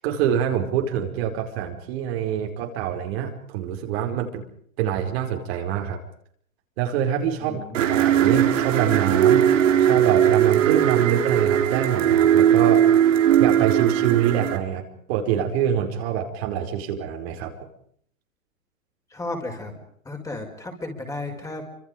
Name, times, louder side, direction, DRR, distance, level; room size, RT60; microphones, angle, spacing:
voice 1, 0.0-4.5 4.8-6.0 6.8-12.9 13.4-17.7, right 9 dB, 45° right, 3 dB, 5.0 m, -25 dB
voice 2, 7.4-8.0 19.1-19.7 20.0-21.6, left 2 dB, 10° left, 2 dB, 5.5 m, -34 dB
sound 1, 7.7-14.6, right 10 dB, 65° right, 3.9 m, -19 dB
29.5 x 26.0 x 5.2 m, 0.64 s
hypercardioid pair, 120°, 41 cm